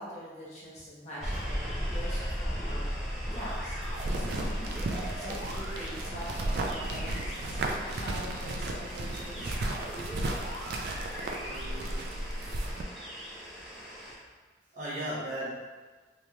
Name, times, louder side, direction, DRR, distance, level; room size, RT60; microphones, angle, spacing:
voice 1, 0.0-2.9 3.3-3.8 4.0-4.5 5.1-9.6, equal, 40° left, -7 dB, 0.8 m, -43 dB
sound 1, 1.2-14.1, equal, ahead, 0.5 m, -38 dB
sound 2, 3.8-12.8, right 1 dB, 65° right, 0.3 m, -34 dB
voice 2, 7.7-8.0 11.4-12.1 13.8-13.9 14.7-15.5, right 1 dB, 45° right, -8 dB, 0.7 m, -38 dB
3.3 x 2.8 x 2.3 m, 1.3 s
head